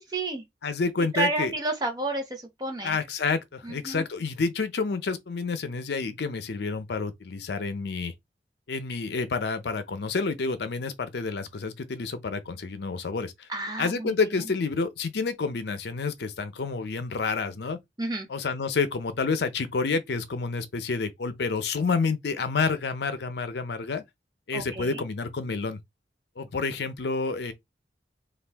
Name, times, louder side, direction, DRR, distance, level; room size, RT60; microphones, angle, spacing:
voice 1, 0.1-0.4 1.1-3.0 3.6-4.0 13.5-14.2 18.0-18.3 24.5-25.0, right 2 dB, 20° right, 0.7 m, -30 dB
voice 2, 0.6-1.5 2.8-8.1 8.7-13.5 13.8-17.8 18.3-24.0 24.5-25.8 26.4-27.5, left 4 dB, 75° left, 0.5 m, -29 dB
2.6 x 2.3 x 3.4 m
head